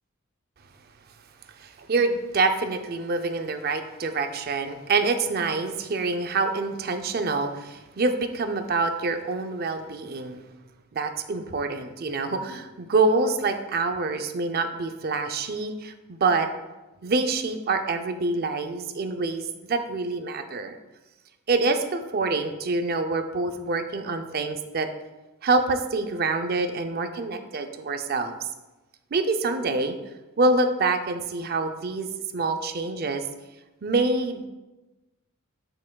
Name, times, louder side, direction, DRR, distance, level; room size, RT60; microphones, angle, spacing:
voice 1, 1.6-10.4 10.9-16.5 17.0-20.8 21.5-24.9 25.4-28.3 29.1-30.0 30.4-33.3 33.8-34.4, right 3 dB, 45° right, 7 dB, 0.5 m, -26 dB
7.4 x 5.9 x 2.3 m, 1.1 s
head